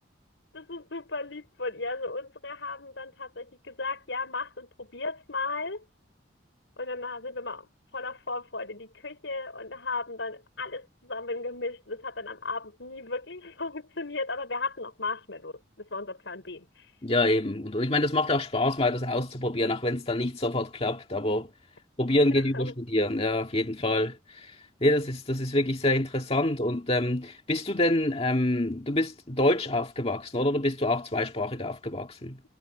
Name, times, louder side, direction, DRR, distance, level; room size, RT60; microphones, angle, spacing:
voice 1, 0.5-5.8 6.8-16.9 22.1-22.7, left 3 dB, 85° left, 4.9 m, -35 dB
voice 2, 17.0-21.5 22.0-24.5 24.8-32.4, left 1 dB, 35° left, 1.9 m, -26 dB
head